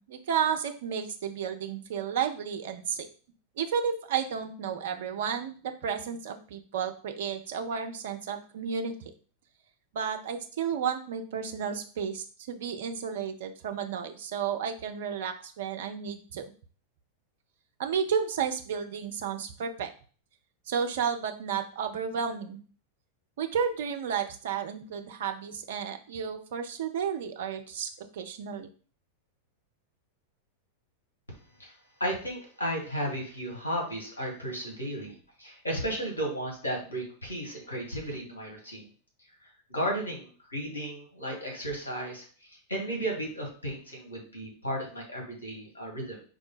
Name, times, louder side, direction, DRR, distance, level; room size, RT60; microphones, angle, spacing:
voice 1, 0.0-3.1 3.6-9.1 9.9-16.5 17.8-19.9 20.7-22.6 23.4-28.7, right 7 dB, 55° right, 6 dB, 0.5 m, -32 dB
voice 2, 32.0-38.8 39.7-42.2 42.7-46.2, right 1 dB, 75° left, 0 dB, 1.6 m, -34 dB
4.7 x 2.2 x 4.6 m, 0.41 s
figure-of-eight pair, 90°, 0 cm